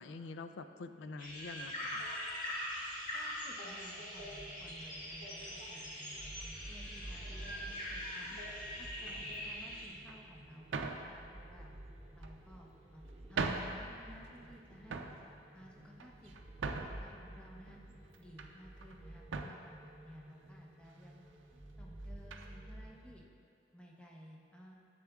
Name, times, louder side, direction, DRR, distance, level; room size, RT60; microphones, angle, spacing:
voice 1, 0.0-2.0, left 3 dB, 70° left, 9 dB, 0.4 m, -46 dB
sound 1, 1.2-9.9, equal, 45° left, 1.9 m, -42 dB
voice 2, 3.1-8.4 8.8-11.7 12.1-15.1 15.5-16.3 17.0-17.8 18.2-21.2 21.8-23.3 23.7-24.7, equal, 5° left, -3 dB, 0.8 m, -56 dB
sound 2, 4.2-23.1, right 1 dB, 35° right, 0.9 m, -52 dB
sound 3, 9.0-9.4 10.1-10.2 10.7-11.1 12.0-12.6 13.1-13.2 13.4-13.8 14.2-14.6 14.8-15.2 15.8-17.1 17.7-18.5 18.8-19.0 19.3-19.6 20.4-20.5 20.9-21.0 22.3-22.5, right 4 dB, 80° right, 0.5 m, -40 dB
10.5 x 7.8 x 2.4 m, 2.5 s
head